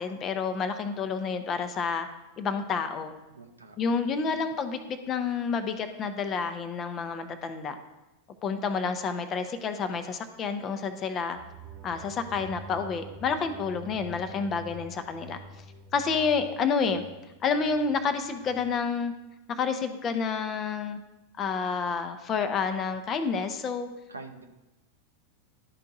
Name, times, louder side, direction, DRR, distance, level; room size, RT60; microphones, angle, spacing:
voice 1, 0.0-2.1 2.4-3.1 3.8-7.8 8.4-11.4 11.8-15.4 15.9-17.0 17.4-19.1 19.5-21.0 21.4-23.9, left 5 dB, 30° left, 8 dB, 0.6 m, -29 dB
voice 2, 3.3-4.5 24.1-24.5, right 3 dB, 80° right, 5 dB, 0.7 m, -47 dB
sound 1, 11.3-18.6, right 4 dB, 35° right, 1.0 m, -47 dB
11.5 x 4.5 x 2.6 m, 1.0 s
figure-of-eight pair, 90°, 0 cm